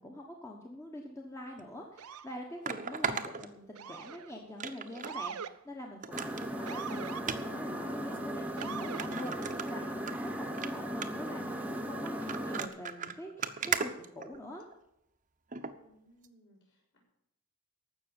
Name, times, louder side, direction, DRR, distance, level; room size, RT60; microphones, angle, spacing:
voice 1, 0.0-14.6, left 1 dB, 15° left, 1 dB, 1.2 m, -45 dB
sound 1, 1.6-1.7 2.6-4.1 4.6-5.2 5.5-5.6 6.0-6.5 7.2-7.4 8.1-8.2 8.6-8.7 9.0-10.1 10.5-10.7 11.0-11.3 12.1-14.7 15.5-15.7 16.2-16.3, right 6 dB, 35° right, 0.8 m, -36 dB
Motor vehicle (road) / Siren, 2.0-2.4 3.8-4.3 5.1-5.5 6.7-7.2 8.6-9.1, right 7 dB, 85° right, 0.6 m, -41 dB
sound 2, 6.1-12.7, equal, 5° right, 1.0 m, -37 dB
voice 2, 15.8-17.0, equal, 55° left, -3 dB, 6.5 m, -64 dB
15.0 x 6.2 x 8.9 m, 0.83 s
head